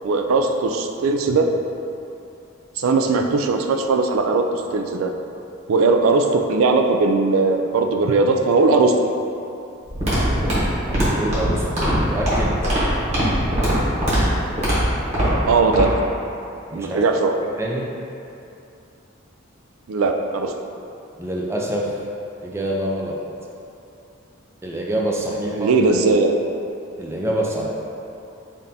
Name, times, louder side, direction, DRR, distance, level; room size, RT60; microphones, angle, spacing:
voice 1, 0.0-1.5 2.8-5.1 5.7-9.0 15.5-15.9 16.7-17.4 19.9-20.5 25.6-26.4, right 3 dB, 85° right, 5 dB, 0.3 m, -19 dB
sound 1, 9.9-15.8, equal, 35° right, 1.2 m, -21 dB
voice 2, 10.9-12.6 16.7-17.0 17.6-17.9 21.2-21.9 22.4-23.1 24.6-25.7 27.0-27.7, right 1 dB, 15° right, -3 dB, 0.4 m, -26 dB
7.1 x 2.6 x 2.7 m, 2.7 s
head